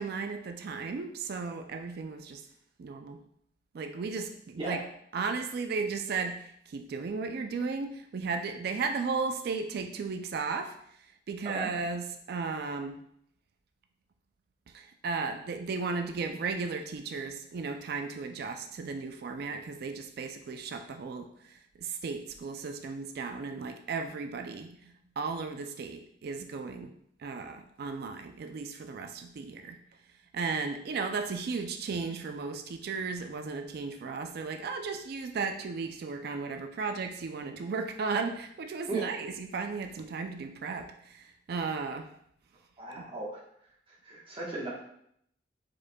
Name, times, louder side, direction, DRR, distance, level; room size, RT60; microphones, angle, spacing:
voice 1, 0.0-2.4 2.8-3.2 3.7-4.8 5.1-10.7 11.3-13.0 14.7-26.9 27.2-29.8 30.3-42.1, right 4 dB, 55° right, 6 dB, 0.4 m, -35 dB
voice 2, 42.8-43.4 44.0-44.7, right 2 dB, 30° right, -4 dB, 1.2 m, -36 dB
4.9 x 4.4 x 2.2 m, 0.70 s
head